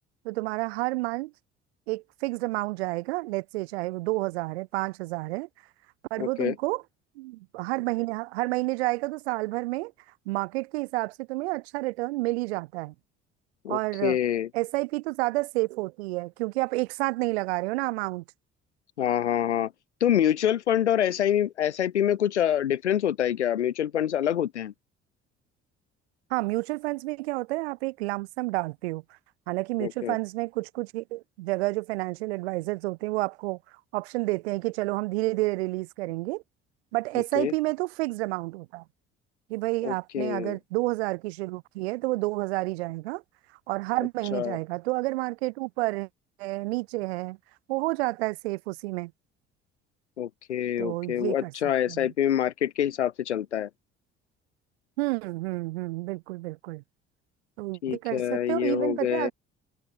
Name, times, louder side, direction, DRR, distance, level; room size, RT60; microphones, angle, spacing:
voice 1, 0.2-1.3 1.9-5.5 6.1-6.8 7.2-9.9 10.3-12.9 13.7-14.2 14.5-18.2 26.3-29.0 29.5-33.6 33.9-36.4 36.9-38.8 39.5-43.2 43.7-46.1 46.4-47.4 47.7-49.1 50.8-51.5 51.9-52.1 55.0-56.8 57.6-59.3, right 21 dB, 70° right, 0.7 m, -30 dB
voice 2, 6.2-6.5 13.6-14.5 19.0-19.7 20.0-24.7 29.8-30.2 37.4-37.5 39.8-40.6 44.3-44.6 50.2-53.7 57.8-59.3, left 10 dB, 85° left, 0.5 m, -26 dB
figure-of-eight pair, 50°, 34 cm